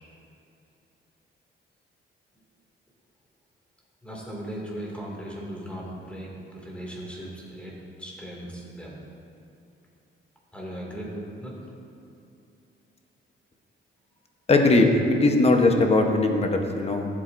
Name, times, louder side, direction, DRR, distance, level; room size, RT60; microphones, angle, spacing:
voice 1, 4.0-9.0 10.5-11.6, right 1 dB, 5° left, -4 dB, 2.3 m, -38 dB
voice 2, 14.5-17.1, left 2 dB, 30° left, 3 dB, 1.0 m, -20 dB
15.5 x 7.5 x 2.6 m, 2.7 s
cardioid pair, 130°, 21 cm